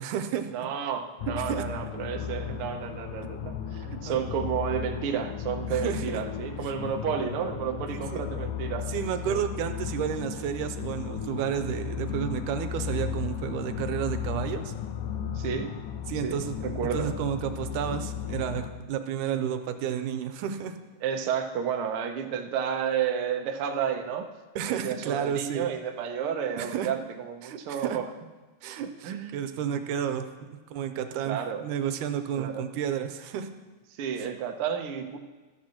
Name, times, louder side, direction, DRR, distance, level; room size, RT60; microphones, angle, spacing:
voice 1, 0.0-0.5 1.4-1.6 3.9-4.2 5.7-6.2 7.9-8.2 8.9-14.7 16.1-16.5 16.9-20.8 24.6-25.7 26.6-26.9 27.4-28.0 28.6-33.5 34.2-34.3, right 9 dB, 85° right, 8 dB, 2.2 m, -31 dB
voice 2, 0.5-8.9 9.3-9.4 15.3-15.8 16.2-17.2 21.0-24.3 24.8-28.0 29.0-29.4 31.2-31.6 32.4-32.6 33.9-35.2, right 8 dB, 70° right, 4 dB, 1.3 m, -31 dB
sound 1, 1.2-18.7, left 8 dB, 85° left, 2.4 m, -35 dB
14.0 x 13.0 x 3.0 m, 1.2 s
omnidirectional pair, 3.6 m